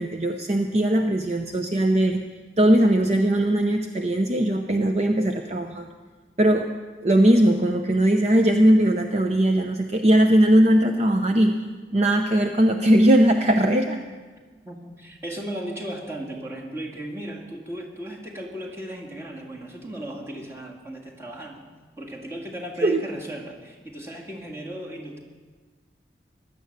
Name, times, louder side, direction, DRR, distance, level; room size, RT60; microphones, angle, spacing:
voice 1, 0.0-2.2 2.6-5.9 6.4-6.7 7.0-11.6 11.9-14.0 22.8-23.0, right 1 dB, 35° right, 5 dB, 0.6 m, -19 dB
voice 2, 14.6-21.6 22.0-25.2, right 1 dB, 15° right, -1 dB, 1.9 m, -36 dB
15.5 x 11.5 x 6.6 m, 1.4 s
head